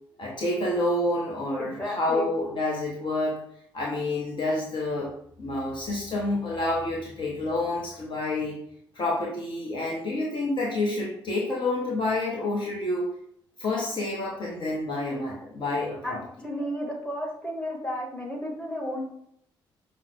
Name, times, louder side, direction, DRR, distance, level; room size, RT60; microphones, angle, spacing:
voice 1, 0.2-3.4 3.7-5.1 5.4-8.6 8.9-13.1 13.6-16.2, left 2 dB, 40° left, -3 dB, 0.9 m, -28 dB
voice 2, 1.6-2.3 16.0-16.2 16.4-19.1, equal, 10° left, -2 dB, 1.4 m, -32 dB
5.6 x 2.1 x 3.0 m, 0.70 s
figure-of-eight pair, 40°, 12 cm